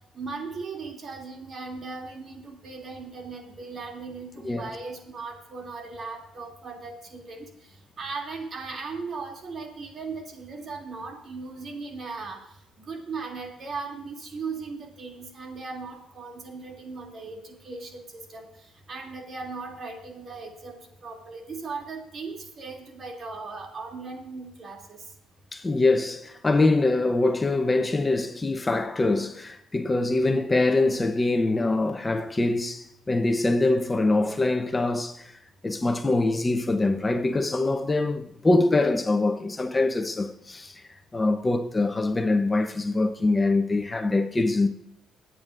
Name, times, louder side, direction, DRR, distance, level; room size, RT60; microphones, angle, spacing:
voice 1, 0.1-12.4 12.8-25.0, right 4 dB, 50° right, 2.8 m, -38 dB
voice 2, 25.5-35.3 35.6-40.8 41.1-44.7, left 2 dB, 20° left, 0.8 m, -24 dB
23.5 x 9.1 x 2.6 m
cardioid pair, 90°, 0 cm